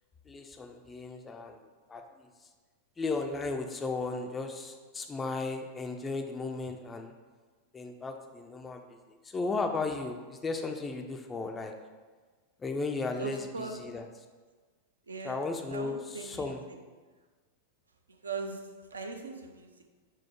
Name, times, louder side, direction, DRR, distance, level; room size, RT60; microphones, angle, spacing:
voice 1, 0.3-1.6 1.9-2.0 3.0-7.1 7.7-8.8 9.2-11.7 12.6-14.1 15.2-16.6, left 3 dB, 15° left, 4 dB, 0.3 m, -35 dB
voice 2, 13.2-13.8 15.1-15.4 15.7-16.5 18.2-18.6 18.9-19.8, right 4 dB, 75° right, 5 dB, 0.4 m, -39 dB
4.5 x 2.0 x 4.4 m, 1.4 s
figure-of-eight pair, 90°, 0 cm